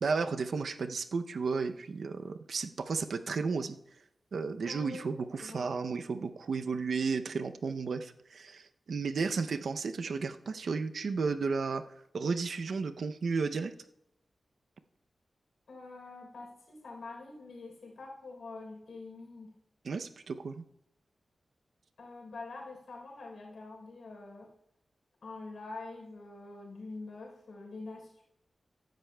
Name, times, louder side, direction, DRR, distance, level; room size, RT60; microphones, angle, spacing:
voice 1, 0.0-3.8 4.3-11.8 12.1-13.7 19.8-20.6, right 4 dB, 80° right, 9 dB, 0.5 m, -33 dB
voice 2, 4.6-5.0 5.4-5.7 15.7-19.5 22.0-24.5 25.2-28.2, left 3 dB, 85° left, -1 dB, 3.7 m, -45 dB
15.0 x 10.5 x 2.2 m, 0.79 s
wide cardioid pair, 100°, 0 cm